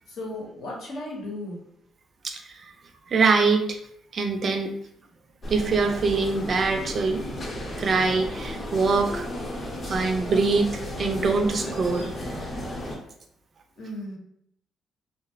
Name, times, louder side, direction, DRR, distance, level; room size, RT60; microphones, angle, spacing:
voice 1, 0.1-1.6 13.8-14.2, left 1 dB, 75° left, -3 dB, 0.8 m, -35 dB
voice 2, 2.2-2.7 3.1-3.8 4.1-4.7 5.5-7.2 7.8-9.3 9.9-10.7 11.0-12.1, right 4 dB, 50° right, 5 dB, 0.4 m, -23 dB
sound 1, 5.4-13.0, left 1 dB, 40° left, 0.7 m, -34 dB
2.7 x 2.0 x 2.4 m, 0.73 s
cardioid pair, 90°, 0 cm